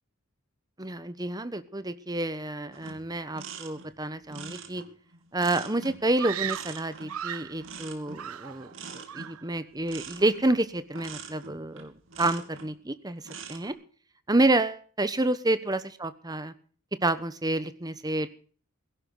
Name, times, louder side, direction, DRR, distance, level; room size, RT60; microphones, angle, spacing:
voice 1, 0.8-4.8 5.3-11.9 12.2-13.2 13.5-13.7 14.3-16.5 17.0-18.3, right 2 dB, 20° right, 12 dB, 1.1 m, -29 dB
sound 1, 2.7-12.7 13.2-13.7, right 5 dB, 60° right, 2.9 m, -44 dB
Screaming, 6.2-7.6 8.1-8.8 9.1-9.5, right 10 dB, 80° right, 0.6 m, -36 dB
17.0 x 16.5 x 3.9 m, 0.44 s
head